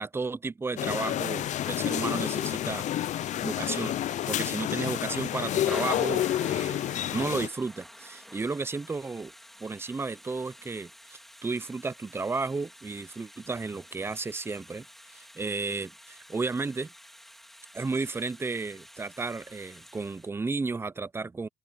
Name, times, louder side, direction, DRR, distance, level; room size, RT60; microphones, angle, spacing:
voice 1, 0.0-2.9 3.4-4.0 4.3-9.3 9.6-14.9 15.1-16.9 17.7-21.5, right 3 dB, 15° right, 0.5 m, -33 dB
sound 1, 0.8-7.5, left 12 dB, 45° left, 0.4 m, -29 dB
Thunder / Rain, 0.8-20.3, equal, ahead, 2.9 m, -50 dB
open air
cardioid pair, 110°, 17 cm